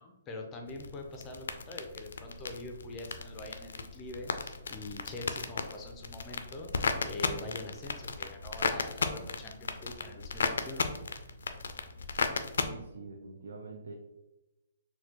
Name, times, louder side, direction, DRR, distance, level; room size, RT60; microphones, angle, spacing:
voice 1, 0.0-6.7 7.0-10.9, left 2 dB, 20° left, 3 dB, 0.5 m, -44 dB
sound 1, 0.7-12.7, left 4 dB, 70° left, 0.3 m, -36 dB
voice 2, 12.6-13.9, right 4 dB, 70° right, 3 dB, 0.4 m, -45 dB
4.1 x 2.2 x 2.8 m, 0.97 s
hypercardioid pair, 135°, 0 cm